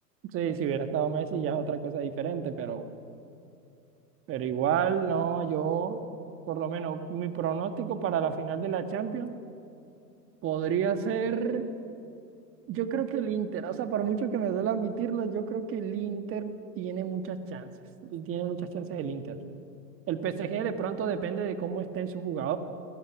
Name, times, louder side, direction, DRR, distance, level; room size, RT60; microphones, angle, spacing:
voice 1, 0.3-2.8 4.3-6.0 6.5-9.3 10.4-11.7 12.7-16.5 16.8-17.7 18.0-19.4 20.1-22.6, right 7 dB, 25° right, 8 dB, 1.8 m, -30 dB
29.5 x 23.5 x 6.1 m, 2.6 s
hypercardioid pair, 130°, 50 cm